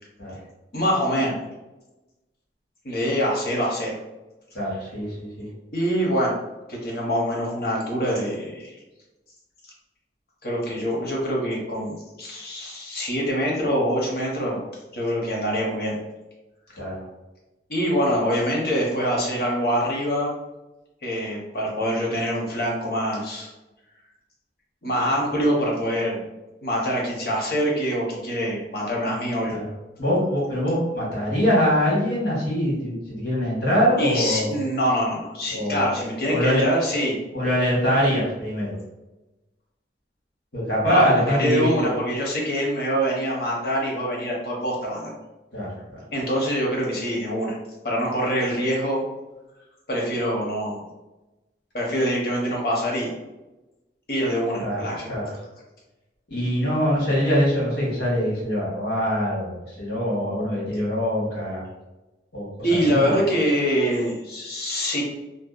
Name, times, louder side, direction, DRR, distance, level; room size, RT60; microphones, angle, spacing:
voice 1, 0.7-1.3 2.8-4.0 5.7-6.4 6.7-8.7 10.4-14.6 14.9-16.0 17.7-20.3 21.0-23.5 24.8-26.2 26.6-29.6 34.0-37.2 40.9-45.1 46.1-47.6 47.8-49.0 49.9-50.8 51.7-53.1 54.1-55.1 62.6-65.0, equal, 60° left, -2 dB, 0.7 m, -24 dB
voice 2, 4.5-5.4 16.8-17.0 29.5-29.6 30.0-34.5 35.5-35.9 36.3-36.6 37.3-38.7 40.5-41.9 45.5-45.7 54.6-54.8 55.1-55.3 56.3-61.6 62.3-63.1, equal, 75° left, -5 dB, 1.1 m, -23 dB
2.7 x 2.1 x 2.3 m, 1.0 s
head